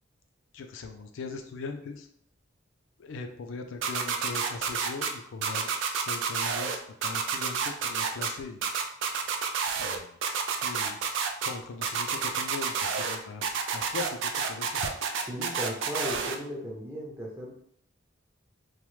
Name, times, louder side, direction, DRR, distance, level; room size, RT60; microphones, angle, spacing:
voice 1, 0.5-2.1 3.0-8.6 9.8-10.2 10.6-11.0 11.4-14.8, left 4 dB, 70° left, 6 dB, 0.4 m, -40 dB
sound 1, 3.8-5.1 5.4-6.7 7.0-8.3 8.6-10.0 10.2-11.5 11.8-13.1 13.4-16.3, right 6 dB, 65° right, 0.4 m, -29 dB
voice 2, 15.3-17.5, equal, 15° right, -2 dB, 0.6 m, -36 dB
3.0 x 2.0 x 3.1 m, 0.64 s
head